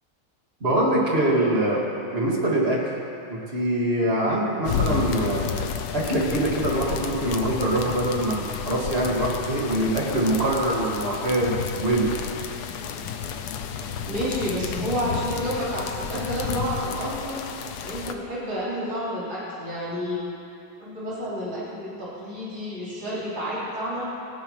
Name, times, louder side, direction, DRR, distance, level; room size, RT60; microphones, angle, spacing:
voice 1, 0.6-1.8 2.1-2.8 3.3-5.5 5.9-12.1, right 1 dB, 30° right, -4 dB, 2.3 m, -24 dB
sound 1, 4.6-18.1, left 7 dB, 70° left, 1.0 m, -31 dB
voice 2, 14.1-17.4 17.8-20.2 20.8-24.1, equal, 60° right, -10 dB, 5.1 m, -30 dB
18.5 x 15.5 x 3.3 m, 2.6 s
omnidirectional pair, 2.3 m